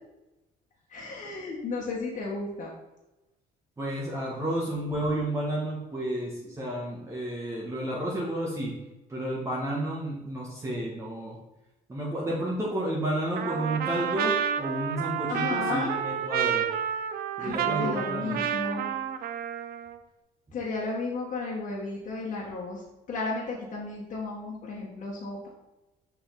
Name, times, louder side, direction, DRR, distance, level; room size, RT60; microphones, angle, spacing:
voice 1, 0.9-2.7 15.3-16.0 17.4-18.9 20.5-25.5, left 3 dB, 45° left, -6 dB, 1.7 m, -33 dB
voice 2, 3.8-8.8 9.1-11.4 11.9-16.7 17.4-18.4, right 1 dB, 15° right, -5 dB, 1.5 m, -31 dB
Trumpet, 13.4-20.0, right 9 dB, 65° right, 0.5 m, -30 dB
6.5 x 5.0 x 4.0 m, 1.0 s
cardioid pair, 110°, 17 cm